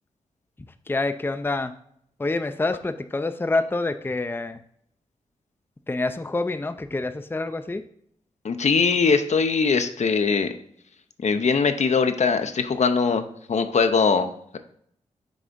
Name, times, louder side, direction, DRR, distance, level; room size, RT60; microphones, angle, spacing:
voice 1, 0.9-1.7 2.2-4.6 5.9-7.8, left 2 dB, 15° left, 10 dB, 0.5 m, -27 dB
voice 2, 8.4-10.5 11.2-14.6, left 5 dB, 60° left, 8 dB, 0.7 m, -21 dB
6.3 x 3.3 x 5.2 m, 0.69 s
supercardioid pair, 40°, 13 cm